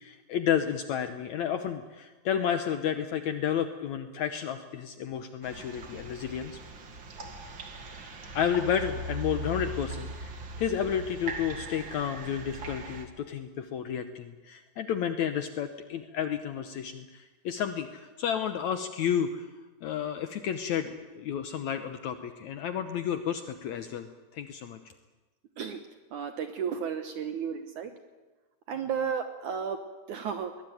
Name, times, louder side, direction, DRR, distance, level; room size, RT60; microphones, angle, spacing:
voice 1, 0.0-6.6 7.9-19.5 19.8-24.9, left 8 dB, 90° left, 9 dB, 1.6 m, -31 dB
sound 1, 5.4-13.1, right 2 dB, 40° right, 2.0 m, -40 dB
voice 2, 26.1-27.9 28.7-29.8 30.1-30.5, right 7 dB, 65° right, 8 dB, 2.0 m, -33 dB
22.5 x 20.0 x 9.2 m, 1.2 s
omnidirectional pair, 4.7 m